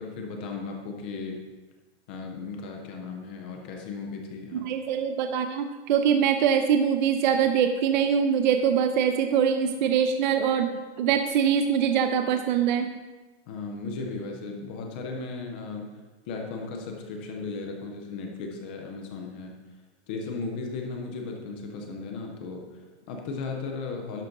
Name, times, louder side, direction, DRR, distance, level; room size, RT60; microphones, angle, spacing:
voice 1, 0.0-1.4 2.1-4.7 13.5-16.0 16.3-19.5 20.1-24.2, left 4 dB, 10° left, 2 dB, 0.3 m, -36 dB
voice 2, 4.5-12.9, right 7 dB, 40° right, 7 dB, 0.7 m, -23 dB
11.5 x 11.0 x 3.8 m, 1.2 s
hypercardioid pair, 165°, 34 cm